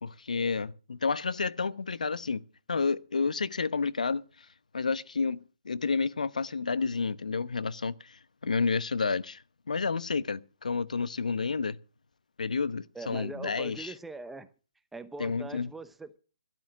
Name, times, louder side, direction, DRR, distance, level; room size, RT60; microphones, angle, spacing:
voice 1, 0.0-2.4 2.7-4.2 4.7-9.4 9.7-11.8 12.4-13.9 15.2-15.7, left 4 dB, 80° left, 0.9 m, -30 dB
voice 2, 12.9-14.5 14.9-16.2, right 3 dB, 5° right, 0.8 m, -42 dB
12.5 x 12.0 x 6.0 m
hypercardioid pair, 155°, 4 cm